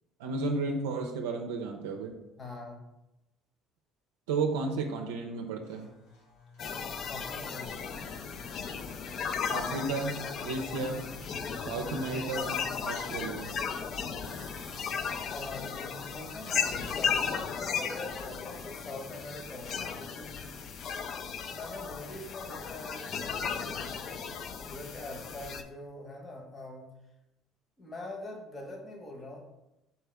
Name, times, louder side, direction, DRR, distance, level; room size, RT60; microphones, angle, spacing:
voice 1, 0.2-2.1 4.3-5.9 9.5-13.5, right 3 dB, 90° right, 2 dB, 0.4 m, -33 dB
voice 2, 2.4-2.8 7.1-7.7 15.3-20.7 21.5-26.9 27.8-29.5, left 1 dB, 35° left, 2 dB, 1.1 m, -44 dB
sound 1, 5.6-19.0, left 3 dB, 85° left, 1.4 m, -56 dB
sound 2, 6.6-25.6, left 6 dB, 55° left, 0.4 m, -35 dB
4.3 x 3.4 x 3.4 m, 0.93 s
supercardioid pair, 75°, 0 cm